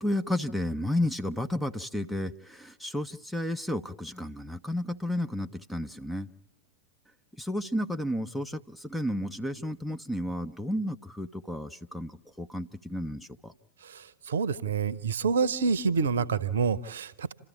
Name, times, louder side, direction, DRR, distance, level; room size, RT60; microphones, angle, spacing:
voice 1, 0.0-6.3 7.4-13.5, left 1 dB, 5° left, 8 dB, 0.8 m, -32 dB
voice 2, 14.3-17.3, right 5 dB, 65° right, 20 dB, 0.8 m, -27 dB
29.0 x 13.5 x 8.4 m, 0.98 s
figure-of-eight pair, 90°, 0 cm